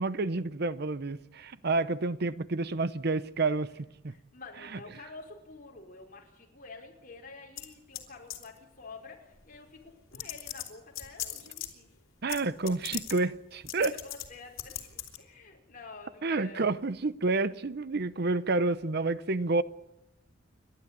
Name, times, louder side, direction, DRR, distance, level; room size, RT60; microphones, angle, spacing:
voice 1, 0.0-3.7 4.0-4.1 4.6-4.8 12.2-13.9 16.2-19.6, right 3 dB, 55° right, 0.8 m, -29 dB
voice 2, 4.1-11.9 13.8-16.7, left 3 dB, 45° left, 5.0 m, -49 dB
sound 1, 7.6-8.0 8.3-8.6 9.5-9.6 10.1-11.7 12.3-12.4 12.7-13.2 13.7-14.3 14.6-15.2, left 12 dB, 80° left, 3.5 m, -38 dB
30.0 x 12.5 x 9.6 m
head